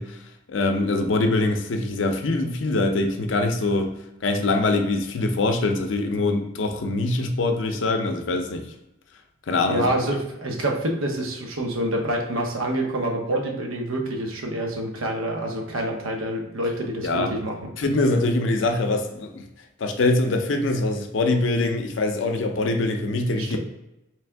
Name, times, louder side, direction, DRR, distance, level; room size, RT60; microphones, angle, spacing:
voice 1, 0.0-4.0 4.2-8.7 9.5-9.9 17.0-17.4 17.8-19.5 19.8-23.6, left 2 dB, 65° left, 6 dB, 0.5 m, -23 dB
voice 2, 9.7-17.7 23.4-23.6, right 1 dB, 85° right, 2 dB, 0.8 m, -27 dB
3.4 x 3.3 x 3.4 m, 0.92 s
head